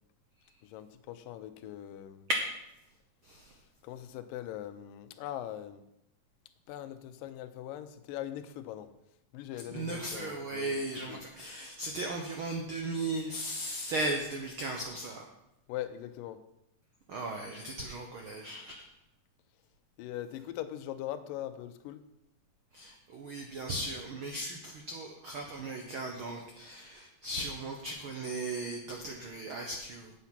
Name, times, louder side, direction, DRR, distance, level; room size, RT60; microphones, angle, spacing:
voice 1, 0.6-2.3 3.8-5.8 6.7-8.9 9.3-10.8 11.1-11.2 15.7-16.4 20.0-22.0, left 12 dB, 85° left, 11 dB, 2.3 m, -41 dB
voice 2, 3.2-3.5 9.7-15.3 17.1-18.8 22.7-30.1, right 2 dB, 80° right, 2 dB, 1.1 m, -37 dB
8.4 x 8.2 x 5.8 m, 0.85 s
omnidirectional pair, 3.9 m